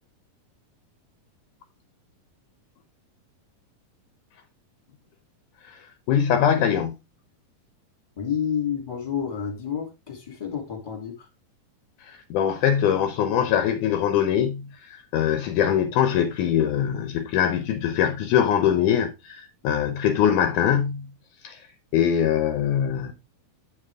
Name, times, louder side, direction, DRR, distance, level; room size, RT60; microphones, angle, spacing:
voice 1, 5.6-6.9 12.0-21.1 21.4-21.6 21.9-23.1, left 9 dB, 75° left, 2.1 m, -23 dB
voice 2, 8.2-11.3, left 8 dB, 15° left, 2.4 m, -29 dB
9.1 x 5.7 x 3.5 m
omnidirectional pair, 4.0 m